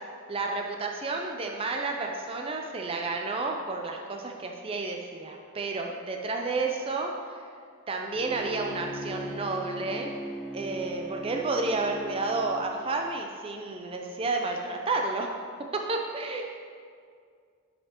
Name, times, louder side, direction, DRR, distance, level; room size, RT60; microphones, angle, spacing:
voice 1, 0.3-7.4 7.9-10.1 10.5-15.4 15.7-16.4, right 3 dB, 25° right, 2 dB, 0.4 m, -31 dB
Bowed string instrument, 8.2-12.7, equal, ahead, 1.1 m, -39 dB
10.0 x 6.6 x 2.9 m, 2.2 s
head